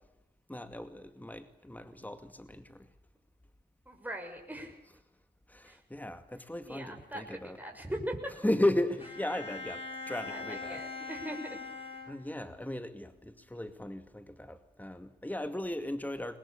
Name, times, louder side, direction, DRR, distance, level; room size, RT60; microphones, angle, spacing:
voice 1, 0.5-2.9 4.8-5.0 5.5-7.6 8.3-11.2 12.1-16.4, left 1 dB, 10° left, 9 dB, 2.3 m, -36 dB
voice 2, 3.9-4.8 5.6-5.8 6.7-8.3 10.2-11.6, right 1 dB, 10° right, 1 dB, 6.3 m, -40 dB
Bowed string instrument, 9.0-12.7, left 3 dB, 35° left, 5.1 m, -42 dB
22.5 x 20.0 x 8.5 m, 0.84 s
supercardioid pair, 40°, 17 cm